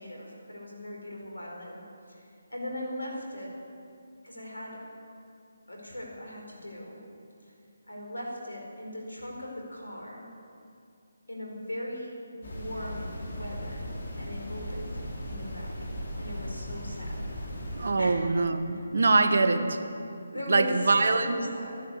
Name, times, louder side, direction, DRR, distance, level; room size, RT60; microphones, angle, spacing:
voice 1, 0.0-3.6 4.2-4.8 5.7-7.0 7.4-7.5 7.9-10.3 11.3-13.9 14.2-15.7 16.2-17.3 18.0-18.2 18.7-18.9 19.4-19.8 20.3-21.8, left 1 dB, 85° left, -1 dB, 4.7 m, -39 dB
sound 1, 12.4-17.9, equal, 55° left, 3.9 m, -37 dB
voice 2, 17.7-19.6 20.5-21.4, right 3 dB, 60° right, 8 dB, 1.2 m, -23 dB
13.5 x 11.0 x 8.4 m, 2.5 s
figure-of-eight pair, 150°, 0 cm